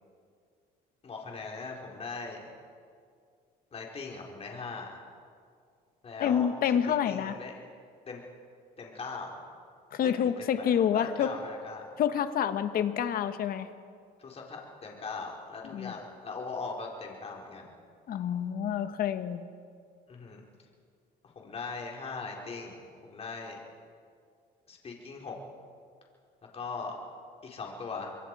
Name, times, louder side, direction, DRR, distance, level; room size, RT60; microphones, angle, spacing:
voice 1, 1.0-2.5 3.7-5.0 6.0-6.5 6.8-7.5 8.1-8.2 8.8-9.4 10.0-11.9 14.2-17.7 20.1-20.4 21.2-23.6 24.7-25.4 26.5-27.0 27.4-28.1, left 4 dB, 35° left, -1 dB, 4.6 m, -40 dB
voice 2, 6.2-7.4 9.9-11.3 12.0-13.7 15.7-15.9 18.1-19.4, left 9 dB, 60° left, 10 dB, 1.4 m, -28 dB
26.0 x 23.0 x 4.9 m, 2.2 s
cardioid pair, 110°, 17 cm